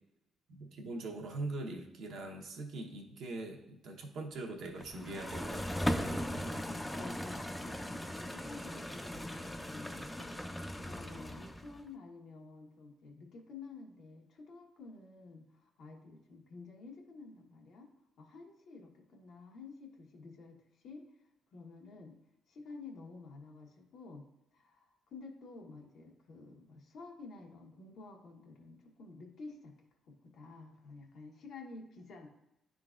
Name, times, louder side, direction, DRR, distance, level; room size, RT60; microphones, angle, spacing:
voice 1, 0.5-6.6 9.1-9.3, right 2 dB, 75° right, 2 dB, 1.0 m, -42 dB
sound 1, 4.8-11.8, equal, 10° left, 0.5 m, -38 dB
voice 2, 6.9-7.8 8.1-17.9 18.2-21.2 21.5-22.2 22.5-24.3 24.5-29.8 30.0-32.3, left 3 dB, 70° left, 0 dB, 1.2 m, -51 dB
10.0 x 3.8 x 2.5 m, 0.90 s
cardioid pair, 90°, 0 cm